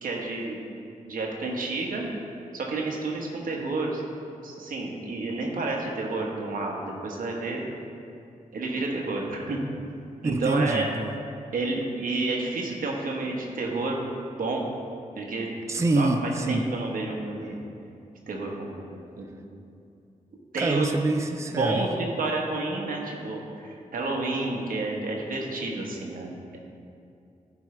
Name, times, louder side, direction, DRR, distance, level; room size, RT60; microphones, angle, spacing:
voice 1, 0.0-0.6 1.1-2.1 2.5-4.0 4.4-7.6 8.5-9.6 10.2-10.9 11.5-14.0 14.4-14.7 15.1-15.5 16.0-16.1 16.5-17.6 18.3-19.3 20.5-21.0 21.6-26.6, right 3 dB, 80° right, -1 dB, 1.2 m, -30 dB
voice 2, 10.2-11.1 15.7-16.7 20.6-21.9, right 2 dB, 20° right, 5 dB, 0.5 m, -26 dB
11.5 x 4.7 x 3.3 m, 2.5 s
cardioid pair, 65°, 14 cm